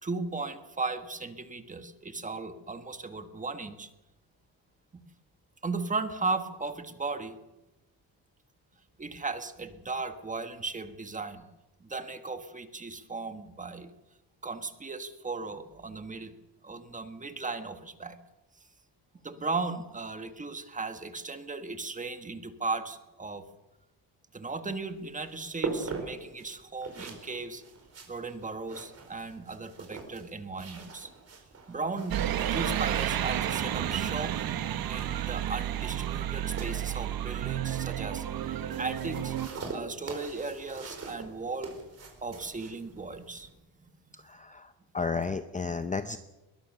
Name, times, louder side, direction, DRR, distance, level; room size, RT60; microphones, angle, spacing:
voice 1, 0.0-3.9 4.9-5.0 5.6-7.4 9.0-11.5 11.8-13.9 14.4-16.3 16.6-18.2 19.2-23.4 24.3-27.6 28.1-31.1 31.7-34.4 34.9-39.4 39.7-41.8 42.2-43.5, right 3 dB, 20° right, 8 dB, 1.5 m, -36 dB
sound 1, 24.7-43.5, right 4 dB, 35° right, 4.7 m, -43 dB
sound 2, 32.1-39.5, right 11 dB, 55° right, 1.2 m, -31 dB
voice 2, 44.1-46.2, left 4 dB, 20° left, 10 dB, 0.7 m, -33 dB
22.0 x 20.5 x 6.7 m, 1.0 s
cardioid pair, 155°, 43 cm